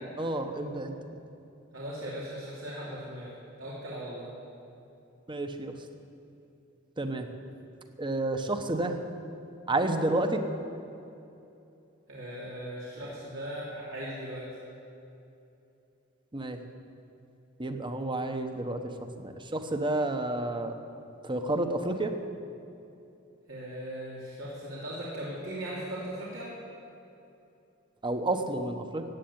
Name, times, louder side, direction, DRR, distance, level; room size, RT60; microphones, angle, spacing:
voice 1, 0.2-0.9 5.3-5.7 7.0-7.3 8.0-9.0 9.7-10.4 16.3-16.6 17.6-18.8 19.2-20.8 21.2-22.1 28.0-29.0, right 2 dB, 25° right, 7 dB, 1.0 m, -30 dB
voice 2, 1.7-3.3 3.6-4.3 12.1-14.4 23.5-26.5, right 1 dB, 90° right, -8 dB, 3.2 m, -38 dB
15.5 x 9.2 x 8.8 m, 2.7 s
head